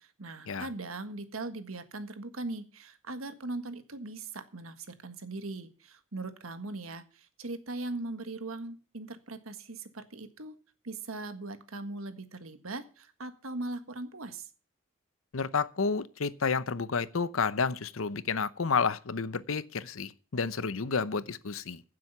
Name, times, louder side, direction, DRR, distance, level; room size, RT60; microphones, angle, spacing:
voice 1, 0.0-10.6 10.8-14.5, right 2 dB, 90° right, 1.6 m, -40 dB
voice 2, 15.3-21.8, left 5 dB, 75° left, 0.8 m, -30 dB
15.5 x 7.6 x 5.6 m
head